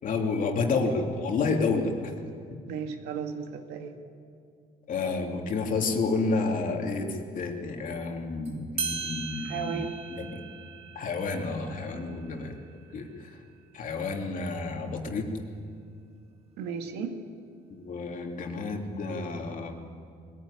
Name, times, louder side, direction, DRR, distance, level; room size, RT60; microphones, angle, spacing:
voice 1, 0.0-2.1 4.9-9.8 10.1-10.3 10.9-12.6 12.9-13.4 13.7-15.3 17.7-19.7, left 4 dB, 50° left, 2 dB, 2.9 m, -30 dB
voice 2, 2.7-4.0 9.4-10.0 16.6-17.2, right 6 dB, 85° right, 5 dB, 2.0 m, -34 dB
sound 1, 8.4-8.5 8.8-13.9, right 5 dB, 35° right, 2.2 m, -39 dB
21.5 x 15.5 x 10.0 m, 2.3 s
cardioid pair, 110°, 17 cm